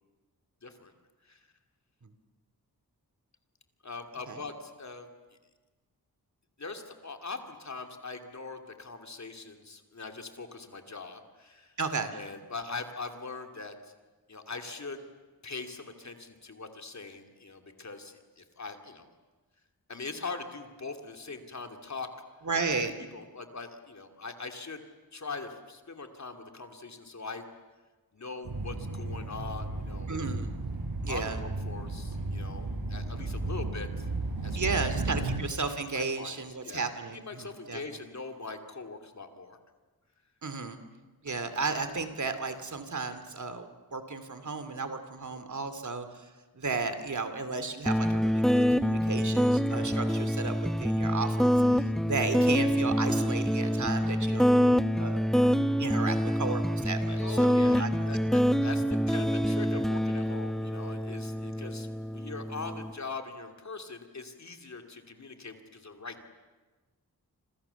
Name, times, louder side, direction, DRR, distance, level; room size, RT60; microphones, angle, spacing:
voice 1, 0.6-0.9 1.2-1.5 3.8-5.1 6.6-11.8 12.1-13.9 14.3-15.0 15.4-19.1 19.9-22.1 23.1-24.8 25.1-27.5 28.1-30.1 31.1-34.1 34.4-34.8 35.1-35.3 35.9-36.4 36.6-36.8 37.1-39.6 57.0-66.3, left 4 dB, 45° left, 5 dB, 2.9 m, -42 dB
voice 2, 11.8-12.1 22.4-22.9 30.1-30.5 31.0-31.4 34.6-37.8 40.4-40.8 41.2-55.5 55.8-57.9 58.3-58.4, right 4 dB, 50° right, 10 dB, 2.6 m, -34 dB
sound 1, 28.4-35.4, right 2 dB, 75° right, 7.0 m, -34 dB
sound 2, 47.9-62.9, equal, ahead, 0.9 m, -26 dB
29.0 x 26.0 x 7.1 m, 1.3 s
wide cardioid pair, 90°, 37 cm